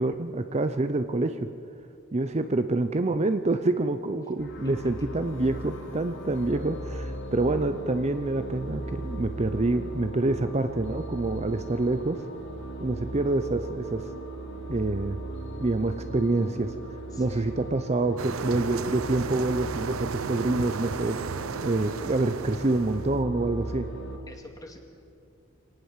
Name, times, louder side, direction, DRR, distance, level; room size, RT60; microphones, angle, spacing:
voice 1, 0.0-1.5 2.1-12.2 12.8-14.1 14.7-15.2 15.6-16.8 17.2-21.2 21.6-23.9, right 2 dB, 30° right, 9 dB, 0.7 m, -27 dB
sound 1, 4.4-24.2, right 1 dB, 60° left, 2.7 m, -38 dB
voice 2, 17.1-17.5 24.3-24.8, equal, 20° left, 3 dB, 2.4 m, -45 dB
sound 2, 18.2-23.2, right 5 dB, 90° right, 0.7 m, -35 dB
25.0 x 18.5 x 7.4 m, 2.5 s
head